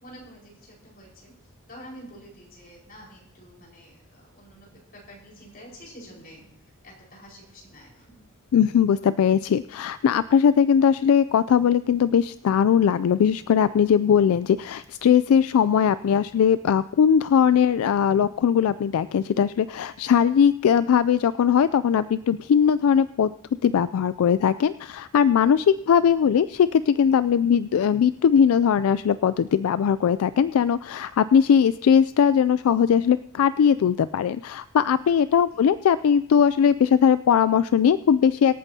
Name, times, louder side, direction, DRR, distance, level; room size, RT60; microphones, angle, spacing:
voice 1, 0.0-1.4 1.7-6.4 6.8-8.2 25.9-26.0 35.5-35.7, equal, 40° left, -3 dB, 4.7 m, -47 dB
voice 2, 8.5-23.3 23.6-38.5, left 7 dB, 70° left, 15 dB, 0.3 m, -20 dB
24.5 x 8.9 x 2.8 m, 0.80 s
head